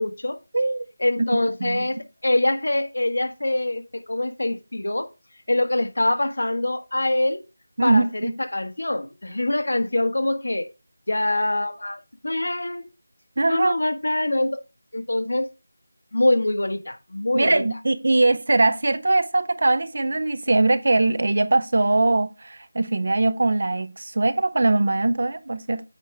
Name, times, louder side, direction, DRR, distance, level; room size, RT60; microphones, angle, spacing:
voice 1, 0.0-0.4 1.0-5.1 5.5-7.4 7.8-10.7 11.1-12.9 13.5-14.6 14.9-15.5 16.1-17.6, left 1 dB, 70° left, 1.3 m, -24 dB
voice 2, 0.5-0.9 1.3-1.9 7.8-8.3 13.4-13.8 17.3-25.8, right 2 dB, 45° right, 0.6 m, -21 dB
8.9 x 4.6 x 3.2 m
figure-of-eight pair, 180°, 0 cm